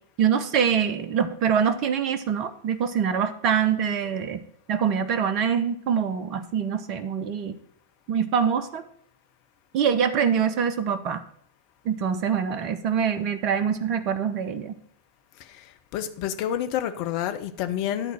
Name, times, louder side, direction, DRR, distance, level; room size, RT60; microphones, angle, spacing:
voice 1, 0.2-4.4 4.7-7.5 8.1-8.8 9.7-11.2 11.8-14.7, right 7 dB, 40° right, 12 dB, 0.8 m, -24 dB
voice 2, 15.4-18.1, left 10 dB, 45° left, 8 dB, 0.8 m, -29 dB
11.0 x 4.0 x 6.1 m, 0.66 s
figure-of-eight pair, 90°, 0 cm